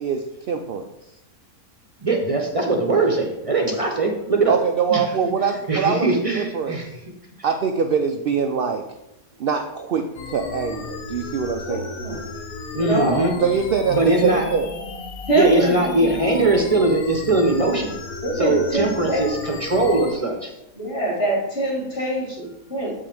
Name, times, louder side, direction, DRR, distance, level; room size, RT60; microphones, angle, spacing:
voice 1, 0.0-0.9 4.5-6.1 6.3-6.8 7.4-8.8 9.4-10.0 10.3-11.9 13.4-14.7, right 6 dB, 90° right, 5 dB, 0.5 m, -23 dB
voice 2, 2.0-4.6 4.9-5.3 5.7-7.0 12.7-13.3 13.9-14.4 15.3-17.9 18.4-20.5, right 2 dB, 35° right, 2 dB, 0.6 m, -21 dB
sound 1, 10.1-20.1, left 4 dB, 75° left, 1.2 m, -34 dB
voice 3, 11.6-12.2 12.7-13.3 15.3-16.4 18.2-19.3 20.7-22.9, right 2 dB, 45° left, -4 dB, 2.8 m, -24 dB
7.5 x 5.5 x 3.4 m, 0.90 s
omnidirectional pair, 1.5 m